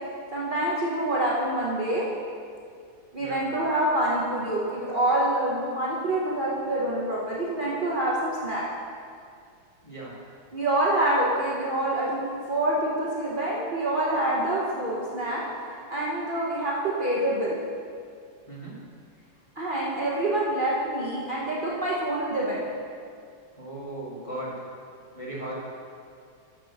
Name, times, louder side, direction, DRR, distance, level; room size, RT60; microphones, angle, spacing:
voice 1, 0.3-2.1 3.1-8.6 10.5-15.4 15.9-17.6 19.6-22.7, right 1 dB, 85° right, -6 dB, 0.4 m, -26 dB
voice 2, 18.5-18.8 23.5-24.5 25.1-25.5, right 1 dB, 20° left, -6 dB, 1.2 m, -37 dB
9.6 x 6.4 x 4.0 m, 2.3 s
omnidirectional pair, 2.3 m